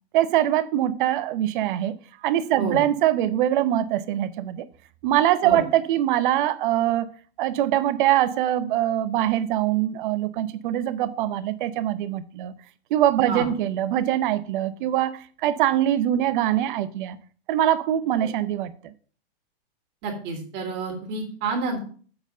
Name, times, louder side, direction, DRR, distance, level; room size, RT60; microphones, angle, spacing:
voice 1, 0.1-4.7 5.0-12.5 12.9-17.2 17.5-18.9, right 12 dB, 50° right, 0.8 m, -23 dB
voice 2, 20.0-21.8, right 3 dB, 35° right, 3.1 m, -29 dB
7.9 x 4.3 x 6.6 m
hypercardioid pair, 140°, 32 cm